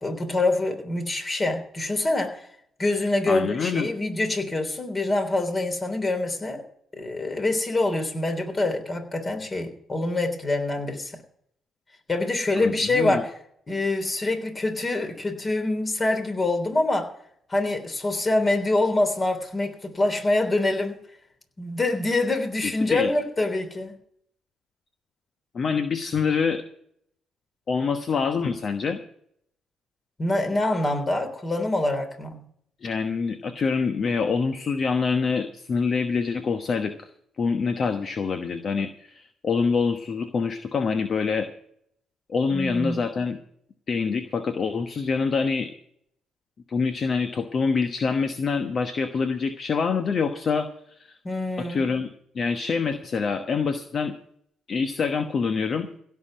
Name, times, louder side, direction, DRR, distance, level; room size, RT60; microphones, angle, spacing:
voice 1, 0.0-2.5 2.8-6.6 7.0-11.1 12.1-13.3 13.7-17.1 17.5-20.9 21.6-23.9 30.2-32.4 42.5-43.1 51.2-51.9, left 2 dB, 35° left, 5 dB, 3.4 m, -25 dB
voice 2, 3.3-3.9 12.6-13.2 22.6-23.1 25.5-26.6 27.7-29.0 32.8-37.1 37.4-41.5 42.3-43.4 43.9-45.7 46.7-50.7 51.0-51.1 51.7-52.1 52.3-54.1 54.7-55.9, left 5 dB, 50° left, 8 dB, 1.1 m, -25 dB
16.5 x 5.9 x 9.0 m, 0.67 s
hypercardioid pair, 50°, 0 cm